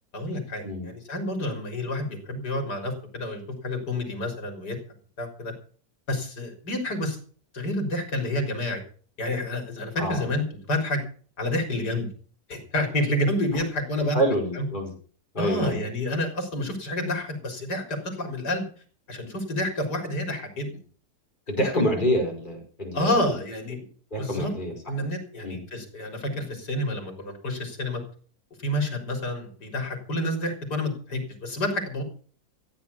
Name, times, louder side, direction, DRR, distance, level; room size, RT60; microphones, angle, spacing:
voice 1, 0.1-4.8 5.2-5.5 6.1-7.2 7.5-8.8 9.2-11.0 11.4-12.1 12.5-14.2 14.5-14.6 15.4-18.6 19.1-20.7 21.6-21.8 22.9-23.8 24.2-24.5 24.9-28.0 28.6-32.0, left 1 dB, 85° left, 4 dB, 4.6 m, -29 dB
voice 2, 14.1-14.9 15.3-15.8 21.5-23.3 24.1-24.7 25.4-25.6, equal, 30° left, 1 dB, 5.6 m, -27 dB
15.0 x 9.6 x 6.9 m, 0.43 s
omnidirectional pair, 1.7 m